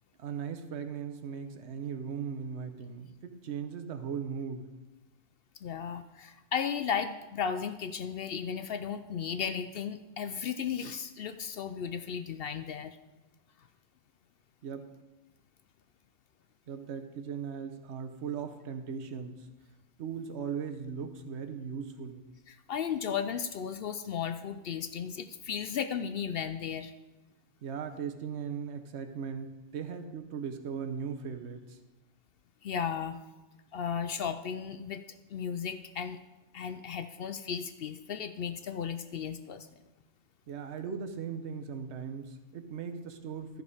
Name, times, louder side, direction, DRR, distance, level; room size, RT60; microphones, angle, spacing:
voice 1, 0.2-4.7 14.6-14.8 16.7-19.5 20.0-22.3 27.6-31.8 40.5-43.6, right 6 dB, 60° right, 7 dB, 1.1 m, -38 dB
voice 2, 5.6-13.0 22.5-26.9 32.6-33.2 33.7-35.0 35.3-36.2 36.5-39.7, left 7 dB, 65° left, 10 dB, 0.6 m, -35 dB
14.0 x 5.1 x 4.9 m, 1.1 s
omnidirectional pair, 1.4 m